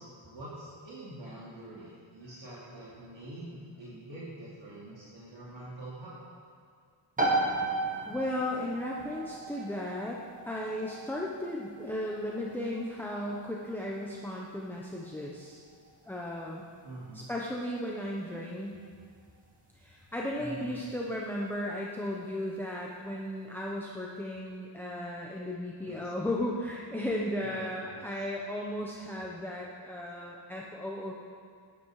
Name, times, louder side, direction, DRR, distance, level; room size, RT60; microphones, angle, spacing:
voice 1, 0.0-6.2 16.8-17.3 20.4-20.8 25.8-26.1 27.4-28.1, right 1 dB, 65° right, -8 dB, 2.9 m, -45 dB
sound 1, 7.2-21.7, right 2 dB, 15° right, 1.9 m, -37 dB
voice 2, 8.1-10.2 10.5-15.6 16.1-16.6 17.1-18.8 19.7-31.1, left 1 dB, 5° left, -3 dB, 1.0 m, -35 dB
18.0 x 10.5 x 4.9 m, 2.1 s
wide cardioid pair, 175°, 49 cm